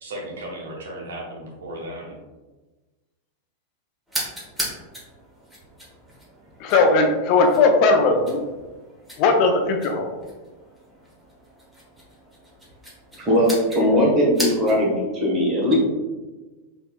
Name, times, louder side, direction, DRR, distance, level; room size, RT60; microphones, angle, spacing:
voice 1, 0.0-2.2, right 1 dB, 65° right, -2 dB, 0.9 m, -35 dB
sound 1, 4.1-15.0, equal, 5° right, 1.3 m, -37 dB
voice 2, 6.6-8.4 9.2-10.1, left 3 dB, 45° left, 3 dB, 0.5 m, -18 dB
voice 3, 13.2-15.8, equal, 30° right, -2 dB, 1.3 m, -19 dB
4.3 x 3.7 x 2.3 m, 1.2 s
figure-of-eight pair, 90°, 0 cm